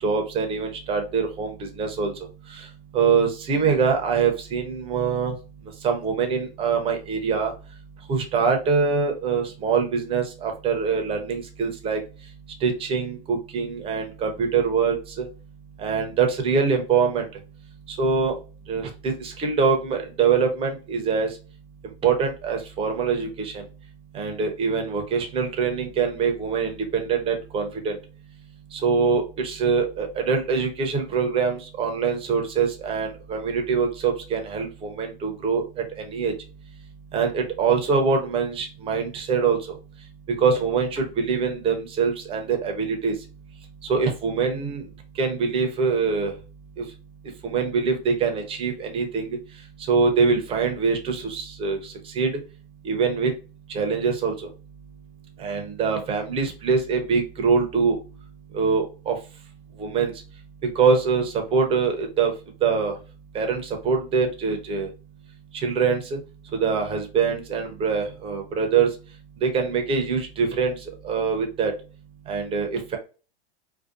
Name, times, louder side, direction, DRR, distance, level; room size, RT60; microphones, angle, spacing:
voice 1, 0.0-2.1 2.5-2.6 2.9-5.3 5.8-7.5 8.1-12.0 12.6-15.3 15.8-17.3 17.9-18.3 18.7-21.3 22.0-23.6 24.1-28.0 28.7-35.6 36.0-36.3 37.1-39.8 40.4-43.1 43.9-44.8 45.2-46.3 46.8-46.9 47.4-49.3 49.9-52.3 52.8-53.3 53.7-54.5 55.4-58.0 58.5-59.1 59.8-60.1 60.8-62.3 62.6-62.9 63.3-64.9 65.5-66.2 66.6-68.9 69.4-70.8 71.0-71.7 72.3-73.0, right 5 dB, 20° right, 4 dB, 0.5 m, -24 dB
2.6 x 2.1 x 2.4 m, 0.34 s
hypercardioid pair, 130°, 32 cm